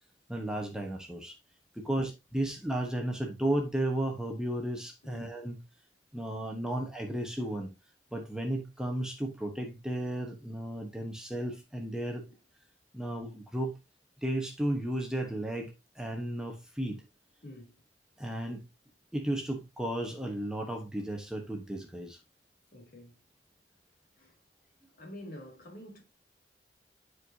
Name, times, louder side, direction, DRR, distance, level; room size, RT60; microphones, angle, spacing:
voice 1, 0.3-1.3 1.8-5.6 6.1-7.7 8.1-12.2 12.9-13.8 14.2-17.0 18.2-18.6 19.1-22.2, right 1 dB, 5° right, 1.2 m, -34 dB
voice 2, 17.4-17.8 22.7-23.2 24.2-24.4 25.0-26.0, left 1 dB, 55° left, 3.1 m, -48 dB
10.5 x 4.7 x 2.8 m
head